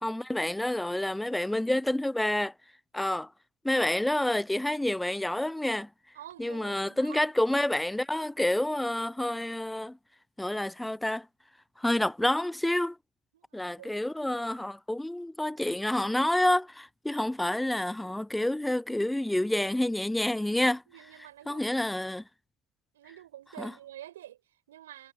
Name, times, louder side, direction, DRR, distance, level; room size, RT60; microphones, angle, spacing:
voice 1, 0.0-2.5 2.9-3.3 3.6-5.9 6.4-10.0 10.4-11.3 11.8-13.0 13.5-20.8 21.5-22.2 23.6-23.7, left 1 dB, 5° left, 0.5 m, -28 dB
voice 2, 6.1-7.3 13.3-14.0 20.9-21.6 22.9-25.1, right 12 dB, 70° right, 5.1 m, -48 dB
figure-of-eight pair, 65°, 0 cm